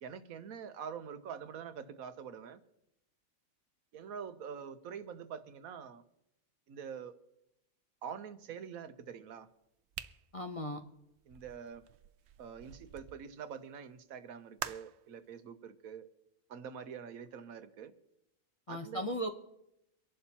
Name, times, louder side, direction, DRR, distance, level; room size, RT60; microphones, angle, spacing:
voice 1, 0.0-2.6 3.9-6.0 6.7-7.2 8.0-9.5 11.3-11.8 12.4-16.1 16.5-17.9 18.7-19.1, right 7 dB, 90° right, 10 dB, 1.3 m, -45 dB
sound 1, 9.9-13.2 14.6-15.0, right 9 dB, 60° right, 0.8 m, -46 dB
voice 2, 10.3-10.8 18.7-19.3, equal, 30° left, 5 dB, 0.7 m, -36 dB
25.0 x 11.0 x 2.9 m, 0.83 s
omnidirectional pair, 1.4 m